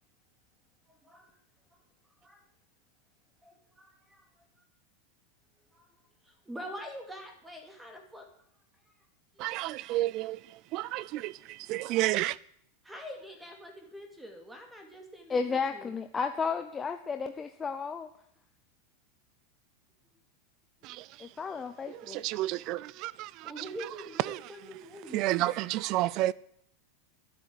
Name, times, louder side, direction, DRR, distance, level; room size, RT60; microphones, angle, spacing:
voice 1, 0.9-1.3 2.2-2.4 3.4-4.3 5.7-6.0 6.2-8.3 9.3-9.5 12.8-15.9 23.4-25.4, equal, 5° right, 2.4 m, -45 dB
voice 2, 9.4-12.4 20.8-21.3 21.9-23.7 24.2-24.5 25.1-26.3, right 16 dB, 35° right, 0.5 m, -31 dB
voice 3, 15.3-18.1 21.2-22.2, left 5 dB, 15° left, 0.6 m, -33 dB
13.0 x 10.5 x 8.4 m
supercardioid pair, 170°, 0 cm